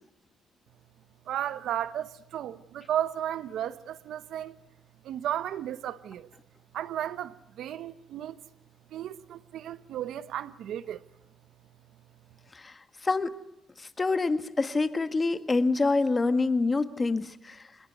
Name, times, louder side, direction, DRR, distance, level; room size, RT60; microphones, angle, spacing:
voice 1, 1.3-4.6 5.0-6.3 6.7-8.4 8.9-11.0, right 11 dB, 75° right, 1.0 m, -34 dB
voice 2, 14.0-17.6, left 3 dB, 25° left, 1.7 m, -26 dB
25.5 x 21.0 x 9.4 m
cardioid pair, 90°, 0 cm